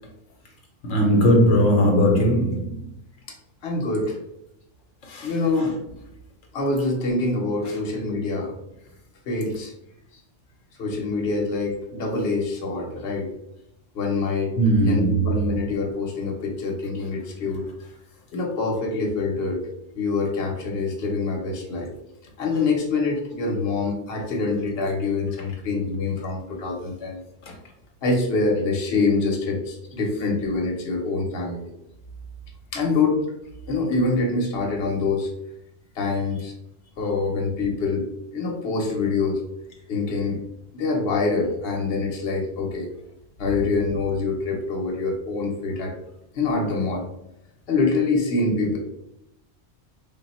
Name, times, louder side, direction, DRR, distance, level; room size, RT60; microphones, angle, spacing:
voice 1, 0.8-2.8 5.1-5.3 14.6-15.3, equal, 80° left, 1.1 m, -18 dB
voice 2, 3.6-4.2 5.2-5.8 6.5-8.5 9.3-9.7 10.8-13.3 13.9-14.5 14.8-17.6 18.3-19.6 19.9-21.9 22.4-27.2 28.0-31.6 32.7-33.2 33.7-35.3 36.0-36.5 37.0-38.1 38.3-39.4 39.9-40.4 40.7-42.9 43.4-45.9 46.3-47.0 47.7-48.8, left 3 dB, 55° left, 1.0 m, -25 dB
3.7 x 2.2 x 4.2 m
omnidirectional pair, 1.3 m